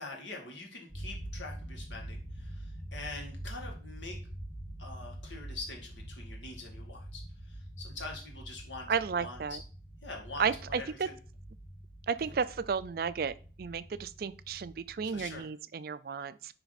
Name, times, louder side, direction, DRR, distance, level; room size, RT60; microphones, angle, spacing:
voice 1, 0.0-4.2 4.8-8.9 9.1-9.6 10.0-11.2 12.3-12.4 15.0-15.5, left 3 dB, 85° left, 2.1 m, -45 dB
sound 1, 0.9-15.4, right 1 dB, 40° left, 1.9 m, -45 dB
voice 2, 8.9-9.6 10.4-11.1 12.1-16.6, right 6 dB, 55° right, 0.4 m, -33 dB
10.0 x 3.5 x 4.0 m
head